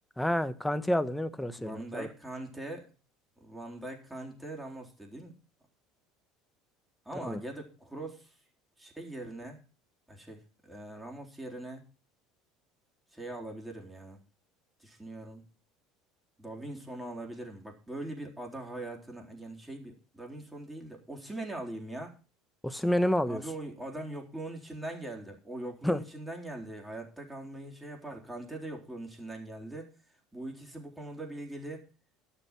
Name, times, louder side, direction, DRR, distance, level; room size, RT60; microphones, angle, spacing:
voice 1, 0.2-2.1 7.2-7.4 22.6-23.4 25.8-26.0, left 1 dB, 5° left, 12 dB, 1.1 m, -29 dB
voice 2, 1.6-2.9 3.4-5.4 7.1-8.3 8.8-9.6 10.1-11.8 13.1-14.2 14.8-15.4 16.4-22.2 23.3-29.9 30.3-31.8, right 1 dB, 10° right, 0 dB, 3.8 m, -41 dB
12.0 x 7.0 x 6.0 m, 0.34 s
hypercardioid pair, 75°, 0 cm